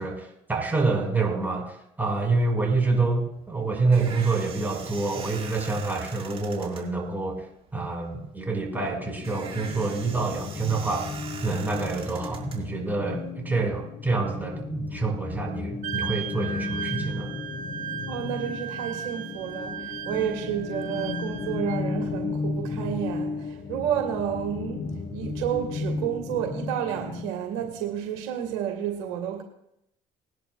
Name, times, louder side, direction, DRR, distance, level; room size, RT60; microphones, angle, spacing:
voice 1, 0.0-7.5 7.7-11.0 11.4-17.3, right 3 dB, 10° right, 0 dB, 4.9 m, -27 dB
sound 1, 3.3-13.3, right 6 dB, 40° right, 3.7 m, -43 dB
sound 2, 8.7-27.3, left 4 dB, 55° left, 1.2 m, -34 dB
Wind instrument woodwind instrument, 15.8-21.8, right 8 dB, 55° right, 1.1 m, -36 dB
voice 2, 18.1-29.4, right 10 dB, 80° right, 3 dB, 1.7 m, -31 dB
20.5 x 11.0 x 2.3 m, 0.80 s
hypercardioid pair, 65°, 15 cm